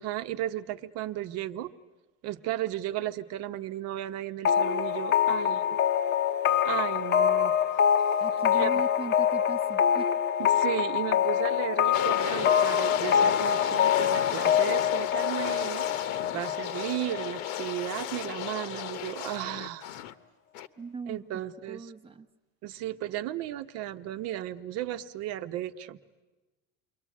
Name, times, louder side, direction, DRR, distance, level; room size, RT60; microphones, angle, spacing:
voice 1, 0.0-1.7 2.2-5.8 6.6-7.5 8.5-8.7 10.4-19.8 21.1-21.9 22.6-26.0, right 13 dB, 50° right, 10 dB, 1.1 m, -35 dB
sound 1, 4.4-18.0, left 9 dB, 30° left, 0.8 m, -25 dB
voice 2, 8.2-10.1 20.8-21.2 21.7-22.3, right 5 dB, 15° right, 10 dB, 1.0 m, -39 dB
sound 2, 11.9-20.1 20.5-20.7, left 12 dB, 60° left, 1.1 m, -34 dB
28.5 x 23.0 x 8.5 m, 1.1 s
supercardioid pair, 145°, 32 cm